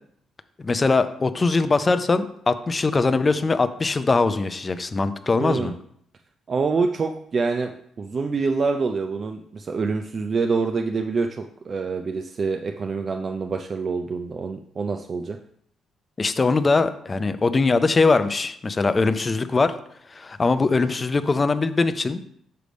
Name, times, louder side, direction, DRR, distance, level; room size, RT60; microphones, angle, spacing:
voice 1, 0.6-5.7 16.2-19.7 20.1-22.2, left 3 dB, 30° left, 11 dB, 0.5 m, -21 dB
voice 2, 5.4-5.7 6.5-15.4, right 4 dB, 40° right, 5 dB, 0.4 m, -26 dB
6.6 x 3.3 x 5.1 m, 0.68 s
cardioid pair, 90°, 0 cm